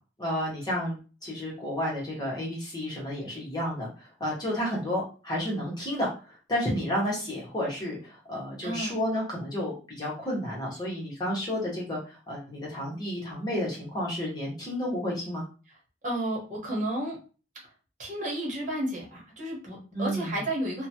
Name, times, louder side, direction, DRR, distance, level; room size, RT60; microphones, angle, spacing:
voice 1, 0.2-15.4 19.9-20.4, equal, 25° left, -4 dB, 1.1 m, -31 dB
voice 2, 8.6-8.9 16.0-17.2 18.0-20.9, right 1 dB, 45° right, -2 dB, 1.1 m, -32 dB
2.9 x 2.3 x 2.8 m, 0.35 s
head